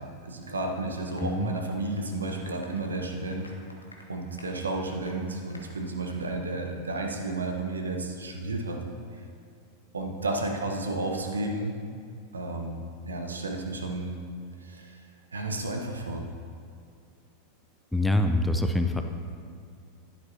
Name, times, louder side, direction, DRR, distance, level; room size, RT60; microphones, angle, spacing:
voice 1, 0.0-3.5 4.1-8.8 9.9-11.7 12.3-14.2 14.6-15.0 15.3-16.2, right 2 dB, 75° right, 2 dB, 1.0 m, -32 dB
Applause, 1.1-6.3 6.7-6.8 7.1-7.2 7.6-7.7, left 1 dB, 80° left, 1.0 m, -54 dB
voice 2, 1.2-1.5 17.9-19.0, left 1 dB, 5° left, 5 dB, 0.5 m, -25 dB
11.5 x 10.0 x 2.8 m, 2.3 s
figure-of-eight pair, 85°, 0 cm